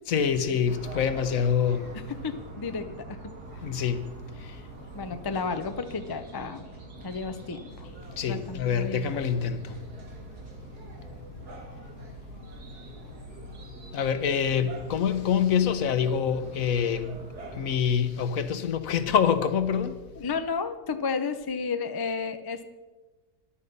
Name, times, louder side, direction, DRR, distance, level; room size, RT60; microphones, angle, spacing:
voice 1, 0.1-1.9 3.6-4.1 4.4-4.6 5.1-5.2 8.2-9.8 13.9-17.1 17.5-20.0, left 7 dB, 65° left, 1.2 m, -26 dB
sound 1, 0.7-17.7, right 1 dB, 90° right, 2.5 m, -44 dB
voice 2, 2.1-3.8 4.9-6.7 7.0-7.9 8.3-9.3 20.2-22.6, left 5 dB, 35° left, 0.3 m, -33 dB
14.0 x 11.0 x 5.4 m
omnidirectional pair, 1.6 m